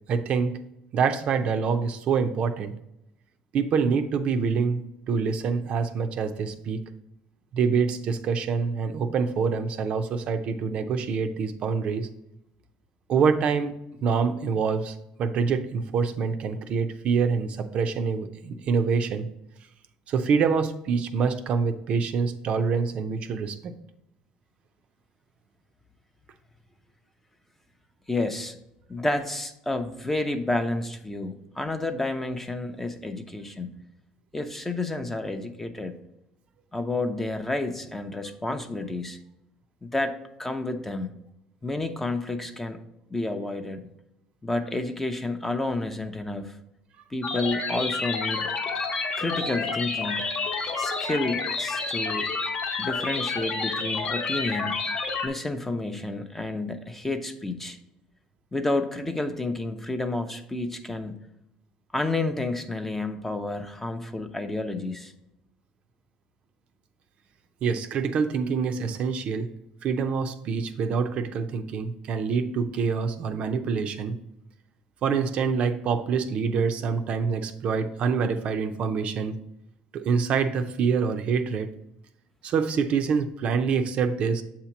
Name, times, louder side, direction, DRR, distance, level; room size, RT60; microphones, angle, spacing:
voice 1, 0.1-0.6 0.9-2.7 3.5-4.8 5.1-6.8 7.5-12.1 13.1-13.7 14.0-19.3 20.1-23.7 67.6-69.5 69.8-74.2 75.0-79.4 79.9-81.7 82.4-84.4, right 5 dB, 50° right, 8 dB, 0.5 m, -26 dB
voice 2, 28.1-28.6 28.9-33.7 34.3-35.9 36.7-39.2 39.8-40.1 40.4-41.1 41.6-42.8 43.1-43.8 44.4-46.5 47.1-48.5 49.1-50.3 50.8-52.3 52.8-54.8 55.2-57.8 58.5-61.2 61.9-65.1, left 2 dB, 10° left, 7 dB, 0.6 m, -30 dB
sound 1, 47.2-55.3, left 4 dB, 40° left, 0.9 m, -29 dB
7.4 x 2.9 x 5.7 m, 0.84 s
cardioid pair, 115°, 3 cm